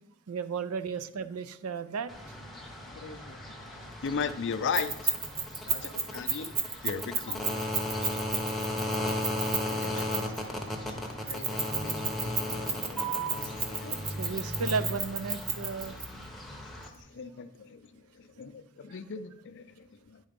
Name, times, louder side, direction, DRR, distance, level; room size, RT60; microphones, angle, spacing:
voice 1, 0.3-2.4 5.7-6.1 14.2-16.0 16.8-16.9, right 5 dB, 85° right, 13 dB, 0.5 m, -34 dB
sound 1, 2.1-16.9, left 1 dB, ahead, 0.8 m, -36 dB
voice 2, 2.9-3.8 4.0-5.2 5.7-7.5 9.7-10.5 10.9-11.0 11.3-14.1 16.5-20.2, left 6 dB, 55° left, 11 dB, 0.5 m, -38 dB
Keys jangling, 4.7-10.4 11.3-16.0, right 4 dB, 25° right, 0.9 m, -32 dB
9.8 x 3.9 x 5.2 m, 0.83 s
head